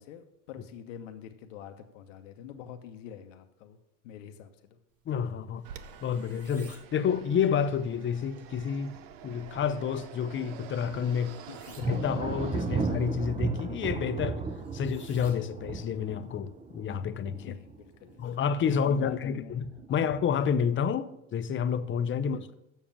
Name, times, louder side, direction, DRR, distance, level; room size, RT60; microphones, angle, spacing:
voice 1, 0.0-3.8 4.0-4.5 11.4-11.8 17.4-18.4 18.7-19.6 19.9-20.1 22.2-22.5, left 9 dB, 80° left, 1.0 m, -46 dB
sound 1, 4.9-18.4, right 3 dB, 40° right, 2.6 m, -61 dB
voice 2, 5.1-5.6 6.0-9.0 9.2-11.4 11.8-14.4 14.7-17.6 18.2-22.5, left 7 dB, 30° left, 0.7 m, -29 dB
Fixed-wing aircraft airplane, 5.6-13.4, right 9 dB, 75° right, 0.8 m, -47 dB
Thunder, 11.8-18.3 18.6-19.2 19.6-20.5, right 5 dB, 20° right, 0.8 m, -35 dB
7.3 x 6.4 x 7.2 m
supercardioid pair, 90°, 37 cm